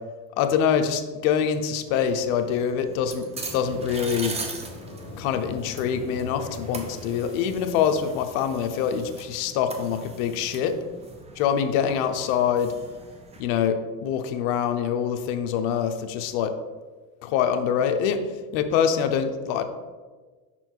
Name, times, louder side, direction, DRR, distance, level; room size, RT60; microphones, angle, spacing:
voice 1, 0.4-4.3 5.2-10.7 11.4-12.7 13.4-16.5 17.2-18.2 18.5-19.6, left 8 dB, 70° left, 8 dB, 0.8 m, -25 dB
sound 1, 1.9-13.4, right 3 dB, 15° right, 0.6 m, -41 dB
sound 2, 3.4-9.3, left 1 dB, 15° left, 1.0 m, -42 dB
5.7 x 4.3 x 4.5 m, 1.4 s
supercardioid pair, 125°, 43 cm